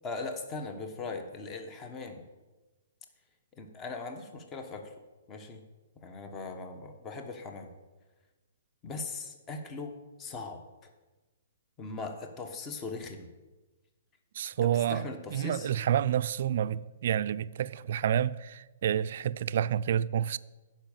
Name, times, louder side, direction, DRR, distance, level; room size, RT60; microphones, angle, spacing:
voice 1, 0.0-2.2 3.6-4.9 5.3-5.6 6.0-7.7 8.8-9.9 10.2-10.6 11.8-13.3 14.6-15.7, left 3 dB, 25° left, 1.2 m, -39 dB
voice 2, 14.4-15.0 15.3-20.4, right 10 dB, 60° right, 0.3 m, -29 dB
10.5 x 5.5 x 7.2 m
hypercardioid pair, 130°, 0 cm